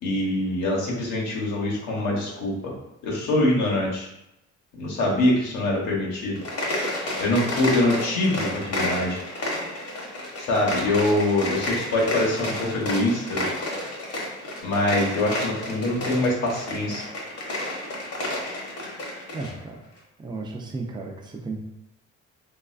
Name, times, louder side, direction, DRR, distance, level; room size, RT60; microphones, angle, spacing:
voice 1, 0.0-2.7 3.0-4.1 4.8-6.4 7.2-9.2 10.4-13.4 14.6-17.0, left 1 dB, 90° left, -3 dB, 0.9 m, -24 dB
sound 1, 6.3-19.6, left 1 dB, 55° left, 0.9 m, -31 dB
voice 2, 19.3-19.9 20.2-21.6, right 3 dB, 15° right, 1 dB, 0.4 m, -34 dB
3.1 x 2.4 x 2.4 m, 0.85 s
cardioid pair, 90°, 30 cm